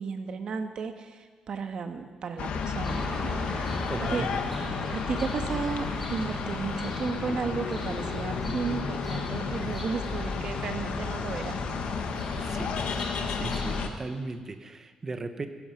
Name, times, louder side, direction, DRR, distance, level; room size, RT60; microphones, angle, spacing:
voice 1, 0.0-4.3 4.9-11.6, right 5 dB, 45° right, 6 dB, 1.3 m, -34 dB
sound 1, 2.4-13.9, left 6 dB, 80° left, 1.3 m, -32 dB
sound 2, 2.8-13.9, equal, ahead, 3.2 m, -38 dB
voice 2, 3.9-4.4 12.3-12.8 13.3-15.5, right 3 dB, 25° right, 8 dB, 1.0 m, -37 dB
16.0 x 15.5 x 5.7 m, 1.5 s
wide cardioid pair, 175°, 2 cm